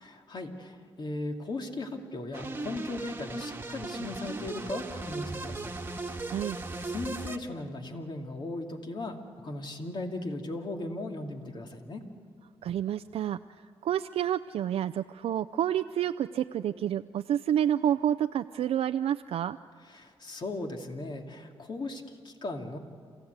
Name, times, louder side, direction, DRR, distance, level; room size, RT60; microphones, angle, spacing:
voice 1, 0.0-5.7 6.0-6.2 6.8-12.0 19.9-22.8, left 2 dB, 50° left, 3 dB, 2.5 m, -37 dB
sound 1, 2.3-7.4, right 2 dB, 20° right, 1.6 m, -37 dB
voice 2, 12.6-13.4 13.8-19.6, right 10 dB, 75° right, 9 dB, 0.4 m, -29 dB
28.0 x 15.5 x 8.1 m, 2.3 s
cardioid pair, 70°, 10 cm